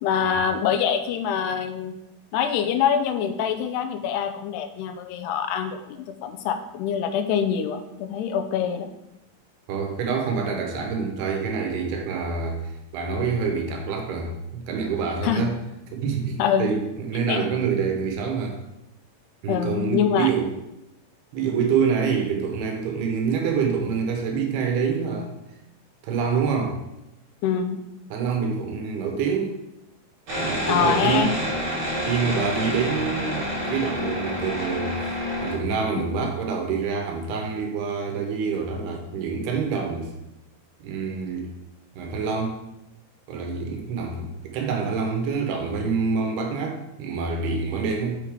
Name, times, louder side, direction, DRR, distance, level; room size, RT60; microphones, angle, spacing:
voice 1, 0.0-1.9 2.3-8.9 15.2-15.4 16.4-16.7 17.3-17.4 19.5-20.3 27.4-27.8 30.6-31.3, left 8 dB, 85° left, 8 dB, 2.7 m, -24 dB
voice 2, 9.7-15.5 15.9-18.6 19.4-20.5 21.3-25.3 26.0-26.8 28.1-29.6 30.4-31.3 32.1-40.1 40.8-41.5 41.9-42.6 43.3-48.2, right 5 dB, 75° right, 3 dB, 3.0 m, -26 dB
sound 1, 30.3-35.5, equal, 40° right, 4.0 m, -28 dB
8.3 x 7.1 x 3.6 m, 0.90 s
omnidirectional pair, 4.7 m